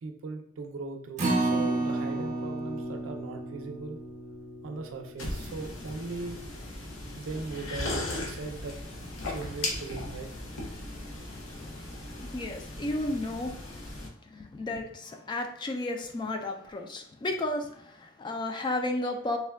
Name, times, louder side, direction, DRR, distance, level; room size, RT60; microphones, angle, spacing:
voice 1, 0.0-4.0 4.6-6.4 7.2-8.8 9.3-10.3, right 3 dB, 90° right, 5 dB, 0.4 m, -39 dB
Acoustic guitar, 1.2-7.5 7.9-8.0 8.4-8.5, right 2 dB, 40° right, 0.6 m, -33 dB
sound 1, 5.2-14.1, left 1 dB, 85° left, 0.6 m, -37 dB
voice 2, 12.2-13.6 14.3-19.4, left 2 dB, 25° left, 4 dB, 0.3 m, -33 dB
3.4 x 2.2 x 2.2 m, 0.68 s
head